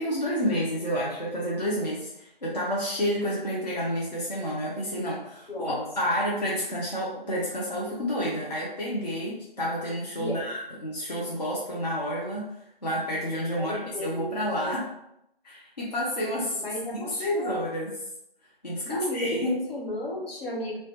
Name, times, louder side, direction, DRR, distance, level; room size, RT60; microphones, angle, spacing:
voice 1, 0.0-12.5 12.8-14.9 15.4-16.6 16.9-17.9 18.6-19.6, equal, 45° left, -6 dB, 0.5 m, -30 dB
voice 2, 5.5-5.8 10.1-10.5 13.6-14.7 16.5-17.7 18.8-20.8, equal, 70° left, -3 dB, 1.1 m, -34 dB
2.3 x 2.1 x 2.7 m, 0.80 s
figure-of-eight pair, 170°, 30 cm